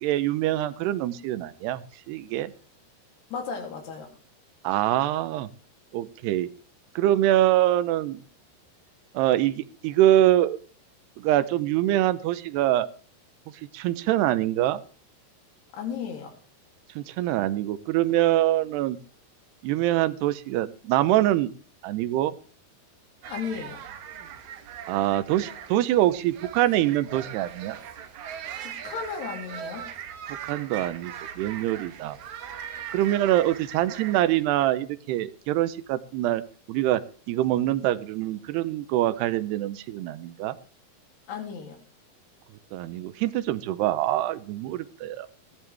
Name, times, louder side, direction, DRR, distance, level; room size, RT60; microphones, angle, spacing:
voice 1, 0.0-1.8 2.1-2.5 4.6-5.5 5.9-6.5 7.0-8.2 9.1-10.6 11.2-12.9 13.7-14.8 17.0-19.0 19.6-21.5 21.8-22.4 24.9-27.8 30.5-32.2 32.9-36.4 36.7-37.0 37.3-40.6 42.7-45.3, right 14 dB, 90° right, 13 dB, 2.9 m, -24 dB
voice 2, 3.3-4.1 15.7-16.4 23.2-23.8 28.6-29.9 41.3-41.8, left 6 dB, 85° left, 2 dB, 5.0 m, -34 dB
sound 1, 23.2-34.5, right 9 dB, 65° right, 2.0 m, -40 dB
17.5 x 12.0 x 3.5 m, 0.41 s
omnidirectional pair, 4.6 m